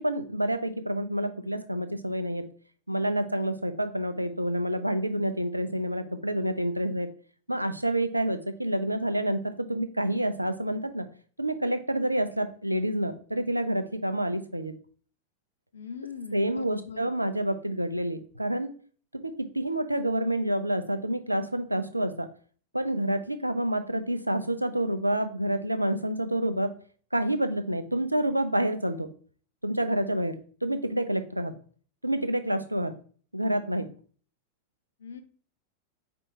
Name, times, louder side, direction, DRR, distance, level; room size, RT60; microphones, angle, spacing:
voice 1, 0.0-2.4 2.9-7.1 7.5-11.0 11.4-14.7 16.3-18.7 19.2-22.3 22.7-26.7 27.1-29.1 29.6-31.5 32.0-32.9 33.3-33.9, right 1 dB, 85° right, 9 dB, 0.4 m, -28 dB
voice 2, 15.7-17.1 35.0-35.2, left 4 dB, 65° left, 8 dB, 0.5 m, -40 dB
4.6 x 3.4 x 2.8 m, 0.43 s
figure-of-eight pair, 90°, 0 cm